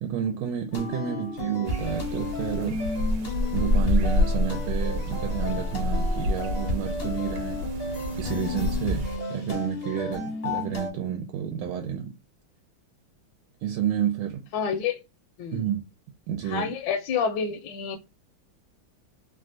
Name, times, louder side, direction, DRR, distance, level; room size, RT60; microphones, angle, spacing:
voice 1, 0.0-2.9 3.5-12.1 13.6-14.4 15.5-15.8 16.3-16.7, right 9 dB, 90° right, 1.5 m, -30 dB
sound 1, 0.7-10.9, left 2 dB, 50° left, 0.7 m, -33 dB
sound 2, 1.6-9.2, left 1 dB, 70° right, 1.3 m, -28 dB
voice 2, 14.5-15.0 15.4-15.6 16.4-18.0, left 6 dB, 75° left, 1.1 m, -29 dB
3.3 x 2.4 x 2.5 m
omnidirectional pair, 2.3 m